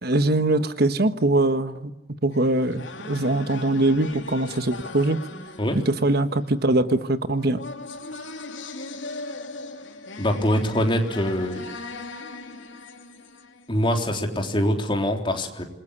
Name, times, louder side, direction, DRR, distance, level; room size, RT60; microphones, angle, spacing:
voice 1, 0.0-1.9 2.2-5.2 5.8-7.6, right 2 dB, 55° right, 11 dB, 1.3 m, -22 dB
sound 1, 2.3-14.2, left 3 dB, 85° left, 2.9 m, -39 dB
voice 2, 10.2-11.7 13.7-15.6, equal, 25° left, 3 dB, 3.7 m, -24 dB
27.5 x 22.0 x 10.0 m, 1.0 s
head